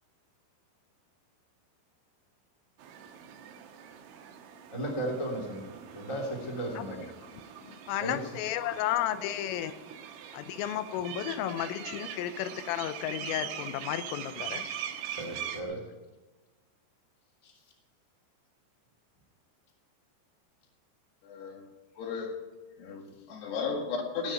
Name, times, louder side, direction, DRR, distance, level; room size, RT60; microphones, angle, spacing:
sound 1, 2.8-15.6, right 9 dB, 90° right, 3.9 m, -42 dB
voice 1, 4.7-7.1 8.0-8.2 15.1-15.8 17.4-17.5, right 1 dB, 10° left, -2 dB, 1.9 m, -35 dB
voice 2, 7.2-9.7 10.3-14.9, left 11 dB, 90° left, 11 dB, 3.4 m, -33 dB
voice 3, 21.2-21.7 22.0-22.4 22.8-24.3, left 5 dB, 65° left, 2 dB, 3.7 m, -35 dB
18.5 x 6.4 x 9.1 m, 1.2 s
omnidirectional pair, 5.7 m